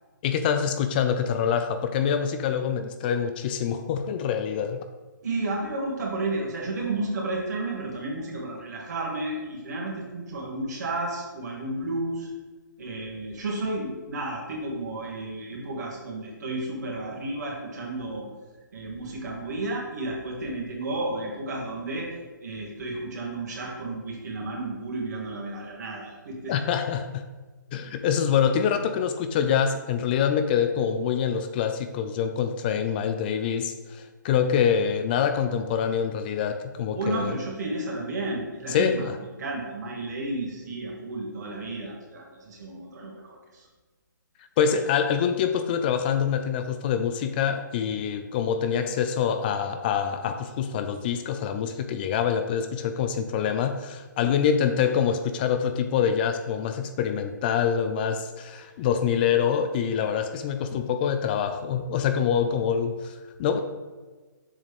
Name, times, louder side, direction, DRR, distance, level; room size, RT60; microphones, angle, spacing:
voice 1, 0.2-4.8 26.5-27.2 27.7-37.4 38.7-39.1 44.6-63.6, left 7 dB, 30° left, 8 dB, 0.4 m, -25 dB
voice 2, 5.2-12.3 12.8-18.2 18.7-22.1 22.4-26.6 36.9-39.1 39.4-43.7, right 2 dB, 60° right, -2 dB, 2.4 m, -32 dB
7.2 x 6.4 x 3.5 m, 1.3 s
figure-of-eight pair, 140°, 11 cm